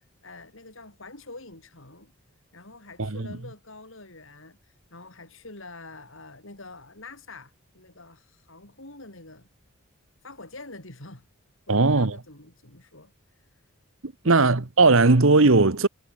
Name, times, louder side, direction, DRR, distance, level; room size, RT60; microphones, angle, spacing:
voice 1, 0.0-2.1 2.5-9.5 10.2-11.2 11.7-13.1 14.2-14.5, left 2 dB, 60° left, 4.8 m, -46 dB
voice 2, 11.7-12.1 14.0-15.9, right 3 dB, 65° right, 1.2 m, -18 dB
head